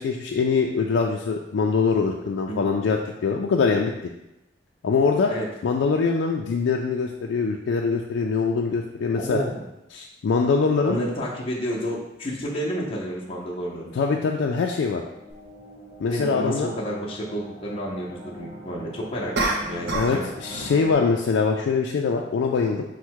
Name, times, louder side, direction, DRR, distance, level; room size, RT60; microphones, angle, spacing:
voice 1, 0.0-3.9 4.8-5.3 5.6-9.4 9.9-11.0 13.9-15.0 16.0-16.7 19.9-22.8, left 5 dB, 70° left, 1 dB, 0.3 m, -23 dB
voice 2, 9.2-9.6 10.8-13.9 16.1-20.2, equal, 30° left, -5 dB, 0.6 m, -30 dB
sound 1, 14.5-20.9, equal, 20° right, 1.1 m, -43 dB
sound 2, 15.3-15.4 19.3-20.2 20.5-20.8, right 2 dB, 65° right, 0.7 m, -27 dB
4.5 x 2.1 x 4.5 m, 0.90 s
head